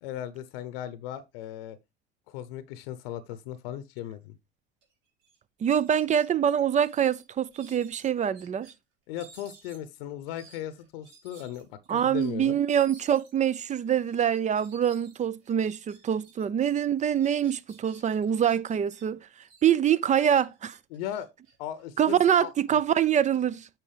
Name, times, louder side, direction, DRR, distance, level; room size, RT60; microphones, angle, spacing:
voice 1, 0.0-1.8 2.3-4.3 9.1-12.6 20.9-21.3 21.6-22.5, left 11 dB, 65° left, 0.8 m, -37 dB
sound 1, 4.8-4.9 5.2-5.4 5.8-8.7 9.1-16.4 16.7-19.0 19.4-22.3, right 5 dB, 65° right, 3.7 m, -55 dB
voice 2, 5.6-8.7 11.9-19.3 19.6-20.8 22.0-23.7, right 9 dB, 25° right, 0.5 m, -25 dB
9.0 x 6.0 x 3.3 m
hypercardioid pair, 80°, 31 cm